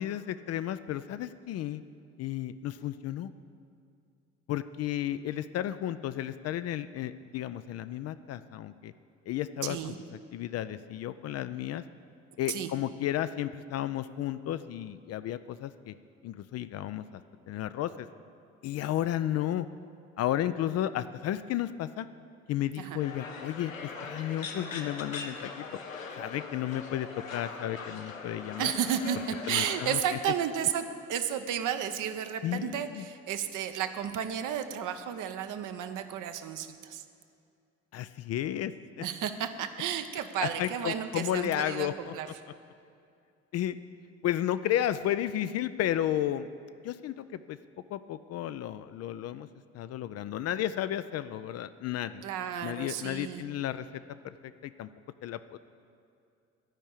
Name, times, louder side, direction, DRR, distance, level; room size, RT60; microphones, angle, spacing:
voice 1, 0.0-1.8 2.2-3.3 4.5-8.9 9.3-9.9 10.3-11.8 12.4-15.9 16.2-17.0 17.5-18.1 18.6-19.7 20.2-22.1 22.5-25.7 26.2-28.7 29.5-30.0 32.4-33.0 37.9-39.0 40.4-42.1 43.5-43.8 44.2-46.5 46.8-47.6 47.9-49.5 49.7-52.2 52.6-53.9 54.6-54.9 55.2-55.6, left 12 dB, 40° left, 13 dB, 0.4 m, -33 dB
voice 2, 9.6-10.0 12.5-12.7 22.8-23.0 28.6-37.0 39.0-42.3 52.2-53.4, right 9 dB, 50° right, 9 dB, 0.8 m, -33 dB
sound 1, 23.0-30.0, left 4 dB, 90° left, 0.7 m, -41 dB
12.0 x 5.4 x 8.4 m, 2.4 s
figure-of-eight pair, 45°, 39 cm